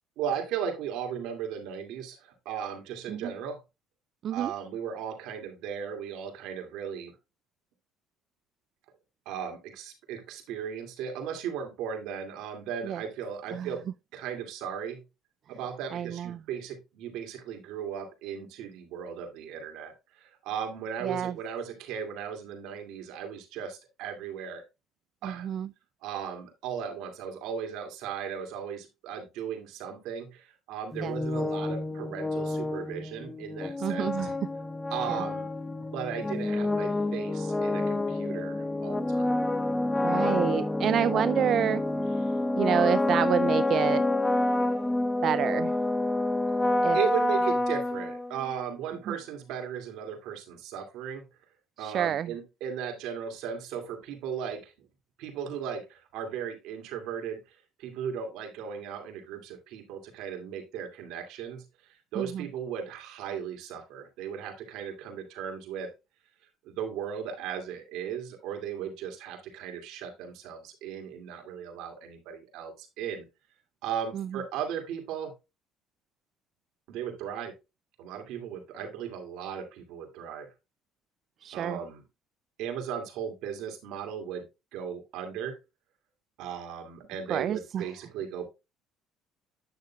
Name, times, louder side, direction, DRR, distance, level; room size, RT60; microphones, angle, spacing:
voice 1, 0.2-3.6 4.3-7.2 9.3-15.0 15.5-24.6 25.2-25.5 26.0-34.3 34.9-35.5 35.8-39.3 42.2-42.4 44.6-44.8 46.9-51.3 51.8-54.9 55.2-65.9 66.6-73.3 73.8-75.3 76.9-77.5 78.0-80.5 81.5-82.0 82.6-84.5 84.7-85.6 86.4-88.4, right 8 dB, 75° right, 2.4 m, -36 dB
voice 2, 15.9-16.4 21.0-21.3 25.2-25.7 31.0-31.2 33.8-34.3 35.1-35.2 40.0-41.8 42.5-44.0 45.2-45.8 46.8-47.0 49.1-49.2 51.8-52.3 62.2-62.5 74.1-74.3 81.4-81.8 87.3-87.9, right 9 dB, 55° right, 0.3 m, -28 dB
sound 1, 30.9-48.6, left 2 dB, 15° left, 0.6 m, -28 dB
9.3 x 6.8 x 2.3 m
cardioid pair, 105°, 0 cm